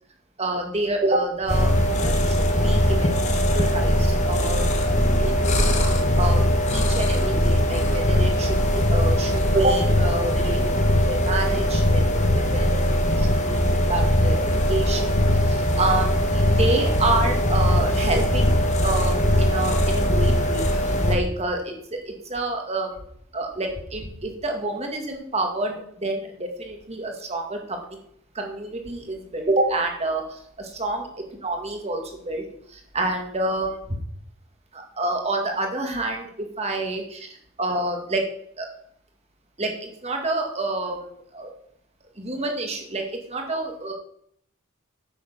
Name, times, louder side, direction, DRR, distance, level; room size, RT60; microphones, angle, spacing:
voice 1, 0.4-5.0 5.2-5.6 6.2-12.9 13.2-23.0 23.3-28.0 28.3-33.8 34.7-38.2 38.6-38.7 39.6-41.5 42.2-43.9, right 2 dB, 30° right, 2 dB, 1.9 m, -28 dB
sound 1, 1.5-21.1, equal, 35° left, 1.5 m, -20 dB
8.9 x 6.6 x 6.8 m, 0.68 s
head